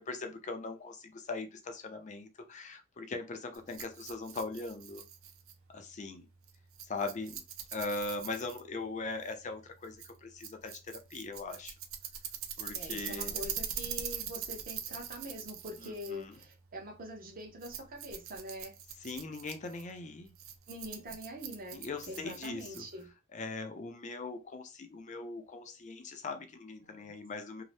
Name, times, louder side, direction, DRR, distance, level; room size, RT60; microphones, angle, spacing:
voice 1, 0.0-5.0 5.7-6.3 6.8-7.4 7.7-11.7 12.6-13.4 15.8-16.4 19.0-20.3 21.7-22.8 23.3-27.6, left 3 dB, 35° left, 0.4 m, -40 dB
Rattle, 3.5-23.1, right 8 dB, 60° right, 0.5 m, -43 dB
voice 2, 12.7-18.7 20.7-23.1 26.8-27.1, equal, 40° right, 0.8 m, -44 dB
2.7 x 2.0 x 3.1 m
head